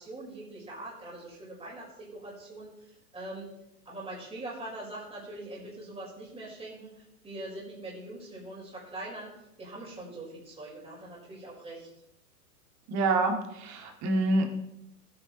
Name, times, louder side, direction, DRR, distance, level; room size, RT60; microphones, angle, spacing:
voice 1, 0.0-3.5 3.8-11.9, right 2 dB, 10° right, -5 dB, 4.8 m, -42 dB
voice 2, 12.9-14.5, right 2 dB, 35° right, 3 dB, 2.3 m, -27 dB
15.0 x 9.8 x 3.1 m, 0.84 s
hypercardioid pair, 110°, 46 cm